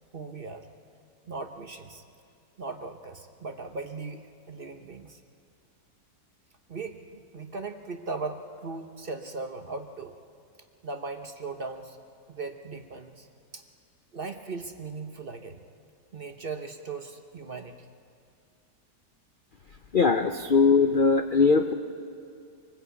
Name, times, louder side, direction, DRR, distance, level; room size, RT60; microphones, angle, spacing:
voice 1, 0.1-0.7 1.3-2.0 2.6-5.2 6.7-10.2 10.8-12.0 12.3-13.3 13.5-13.6 14.1-15.6 16.1-17.9 20.2-20.3, right 4 dB, 40° right, 6 dB, 0.9 m, -38 dB
voice 2, 19.9-21.7, left 4 dB, 60° left, 7 dB, 0.5 m, -21 dB
25.0 x 19.5 x 8.3 m, 2.4 s
omnidirectional pair, 1.8 m